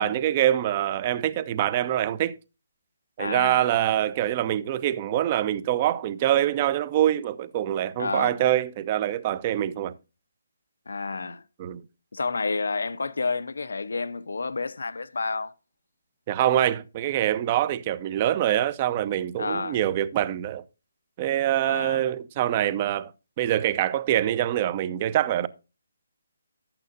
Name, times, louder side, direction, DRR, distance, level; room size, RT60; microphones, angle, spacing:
voice 1, 0.0-2.4 3.2-9.9 11.6-11.8 16.3-20.6 21.2-23.1 23.4-25.5, right 12 dB, 30° right, 0.7 m, -25 dB
voice 2, 3.2-3.7 8.0-8.4 10.9-11.4 12.1-15.5 19.4-19.8 21.6-22.0, left 4 dB, 70° left, 0.6 m, -30 dB
12.5 x 8.8 x 2.6 m
figure-of-eight pair, 145°, 0 cm